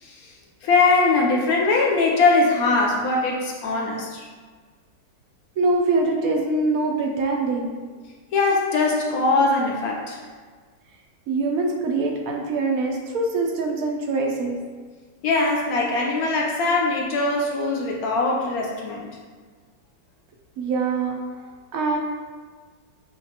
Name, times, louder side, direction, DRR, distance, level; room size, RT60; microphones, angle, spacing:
voice 1, 0.0-0.3 0.6-4.2 8.3-10.2 15.2-19.1, left 3 dB, 70° left, -1 dB, 0.9 m, -21 dB
voice 2, 5.6-7.8 11.3-14.6 20.6-21.2 21.7-22.0, right 3 dB, 70° right, 0 dB, 0.8 m, -23 dB
6.6 x 2.4 x 2.8 m, 1.5 s
omnidirectional pair, 1.9 m